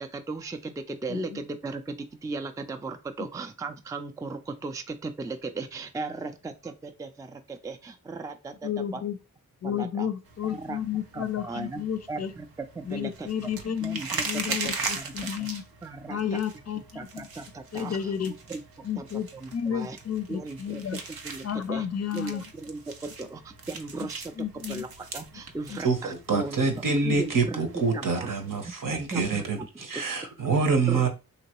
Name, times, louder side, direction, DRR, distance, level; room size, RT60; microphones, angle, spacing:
voice 1, 0.0-9.0 9.6-10.1 10.4-10.8 11.1-11.8 12.1-12.5 12.8-13.5 13.8-15.5 15.8-16.4 17.0-18.1 18.5-18.6 19.0-19.1 19.3-20.0 20.3-20.8 21.1-21.9 22.1-24.3 24.7-24.9 25.1-26.6 27.2-28.3 28.9-29.9 30.9-31.1, right 3 dB, 10° right, 0.4 m, -37 dB
voice 2, 1.1-1.4 8.6-9.2 9.6-12.3 12.8-15.6 16.1-17.3 17.7-18.3 18.8-21.0 21.4-22.5 24.0-24.1 24.4-24.8 25.7-25.8 26.3-26.7 27.0-27.2, left 8 dB, 45° left, 0.5 m, -32 dB
sound 1, 10.3-28.7, right 4 dB, 80° right, 0.6 m, -40 dB
voice 3, 26.3-31.1, right 4 dB, 65° right, 1.0 m, -26 dB
3.0 x 2.8 x 2.9 m
cardioid pair, 40°, 35 cm